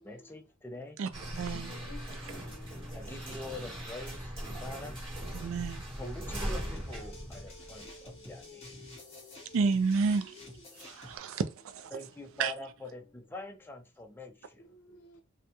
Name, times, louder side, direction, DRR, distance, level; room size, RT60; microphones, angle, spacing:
voice 1, 0.0-1.0 2.9-4.3 4.6-5.0 6.0-8.7 11.9-14.7, left 2 dB, 10° left, 0.3 m, -44 dB
voice 2, 1.0-1.7 5.3-5.8 9.5-10.3 10.8-11.9 12.4-12.5, right 4 dB, 65° right, 0.3 m, -30 dB
sound 1, 1.1-8.1, equal, 25° right, 0.7 m, -40 dB
voice 3, 1.5-3.5 4.5-4.6 6.0-9.6 10.2-10.5 14.6-15.2, left 1 dB, 85° left, 0.6 m, -53 dB
sound 2, 5.3-11.2, left 1 dB, 30° left, 0.8 m, -50 dB
2.3 x 2.0 x 2.8 m
head